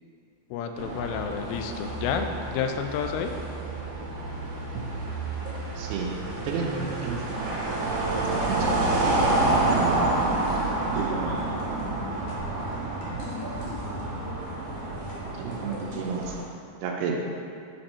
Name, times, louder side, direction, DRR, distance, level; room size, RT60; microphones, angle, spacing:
voice 1, 0.5-3.4, left 7 dB, 85° left, 6 dB, 2.7 m, -30 dB
sound 1, 0.8-16.4, right 2 dB, 70° right, 2.7 m, -29 dB
sound 2, 3.0-14.4, right 12 dB, 50° right, 1.4 m, -47 dB
sound 3, 5.2-5.6 6.3-6.6 6.9-7.0 7.3-7.4 7.7-9.1 9.5-10.1 10.4-10.6 11.2-14.3 14.7-16.0, left 1 dB, 60° left, 1.7 m, -40 dB
voice 2, 5.8-7.2 8.1-8.7 9.7-10.1 11.0-11.2 15.3-16.4 16.8-17.2, right 5 dB, 85° right, 0 dB, 2.7 m, -31 dB
7.7 x 4.4 x 4.2 m, 2.4 s
omnidirectional pair, 4.8 m